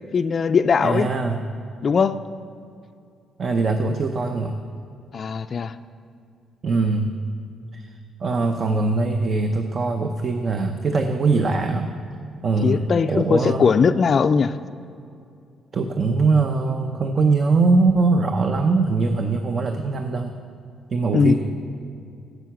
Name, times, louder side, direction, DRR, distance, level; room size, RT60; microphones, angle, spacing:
voice 1, 0.1-1.1 1.8-2.2 5.1-5.8 12.6-14.6 21.1-21.3, left 5 dB, 45° left, 10 dB, 0.3 m, -19 dB
voice 2, 0.8-1.4 3.4-4.6 6.6-7.1 7.7-7.9 8.2-11.9 12.4-13.7 15.7-20.3 20.9-21.3, right 3 dB, 45° right, 5 dB, 0.6 m, -21 dB
9.1 x 7.9 x 5.9 m, 2.5 s
cardioid pair, 90°, 0 cm